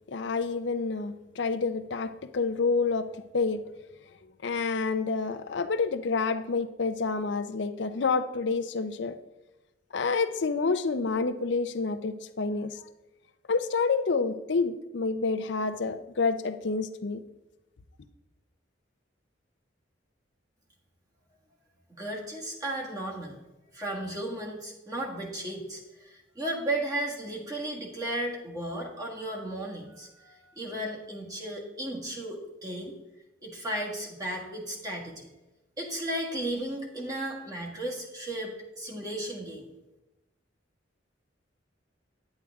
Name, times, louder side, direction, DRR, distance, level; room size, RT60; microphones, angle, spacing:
voice 1, 0.1-3.1 3.3-3.6 4.4-9.1 9.9-12.8 13.5-17.2, left 4 dB, 65° left, 11 dB, 0.6 m, -28 dB
voice 2, 22.0-23.4 23.7-32.9 33.4-35.3 35.8-39.7, right 1 dB, 20° right, -3 dB, 1.6 m, -35 dB
9.8 x 8.5 x 3.5 m, 1.0 s
head